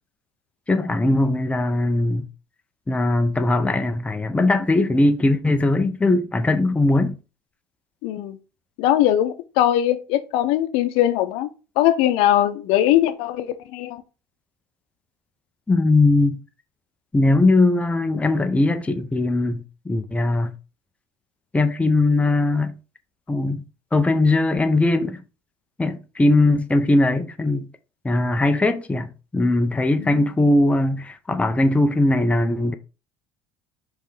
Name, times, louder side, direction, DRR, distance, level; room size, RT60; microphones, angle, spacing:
voice 1, 0.7-2.3 2.9-7.2 15.7-16.4 17.1-20.5 21.5-22.7 23.3-23.6 23.9-25.2 25.8-27.7 28.0-32.7, left 2 dB, 10° left, 0.8 m, -20 dB
voice 2, 8.0-8.4 8.8-14.0 30.0-30.3, left 12 dB, 70° left, 0.8 m, -21 dB
5.5 x 3.5 x 4.8 m
hypercardioid pair, 75°, 10 cm